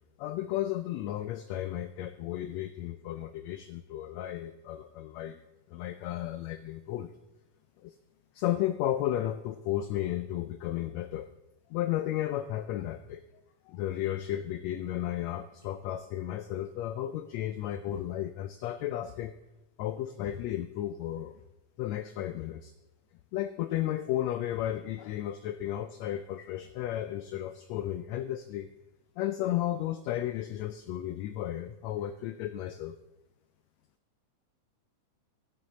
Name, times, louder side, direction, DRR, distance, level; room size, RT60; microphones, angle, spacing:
voice 1, 0.2-5.4 5.7-7.1 7.8-7.9 8.3-11.3 11.7-13.2 13.7-19.3 19.8-21.4 21.8-22.7 23.3-28.7 29.2-33.0, left 12 dB, 90° left, 11 dB, 1.5 m, -33 dB
11.5 x 11.0 x 4.2 m, 0.99 s
omnidirectional pair, 3.6 m